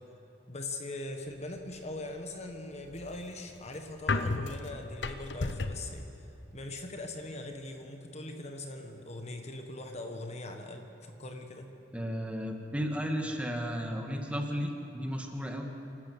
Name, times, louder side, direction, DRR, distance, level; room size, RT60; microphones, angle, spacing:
voice 1, 0.5-6.0 6.5-11.7, left 2 dB, 40° left, 4 dB, 1.5 m, -41 dB
sound 1, 2.7-5.9, left 3 dB, 80° left, 1.0 m, -33 dB
voice 2, 11.9-15.6, equal, 5° right, 2 dB, 1.9 m, -34 dB
27.5 x 12.5 x 8.2 m, 3.0 s
head